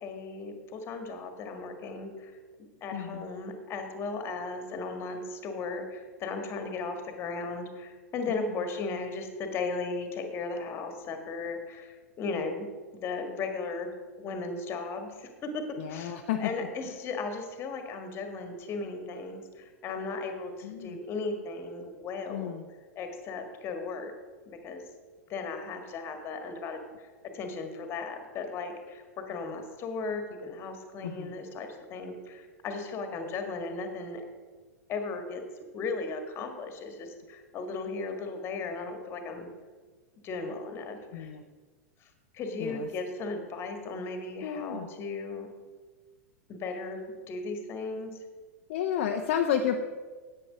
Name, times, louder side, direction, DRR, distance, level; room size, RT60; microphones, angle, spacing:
voice 1, 0.0-2.3 2.8-12.7 12.9-13.9 14.2-15.6 15.9-22.5 22.9-24.1 24.4-24.8 25.3-27.1 27.3-34.2 34.9-35.4 35.7-39.5 40.2-41.3 42.0-42.1 42.3-45.5 46.5-48.1, left 3 dB, 30° left, 6 dB, 1.6 m, -36 dB
voice 2, 2.9-3.2 8.3-8.4 15.8-16.5 20.6-21.0 22.3-22.6 31.0-31.3 41.1-41.4 42.6-42.9 44.4-44.9 48.7-49.8, left 8 dB, 50° left, 5 dB, 0.7 m, -31 dB
10.0 x 8.8 x 5.0 m, 1.4 s
figure-of-eight pair, 95°, 8 cm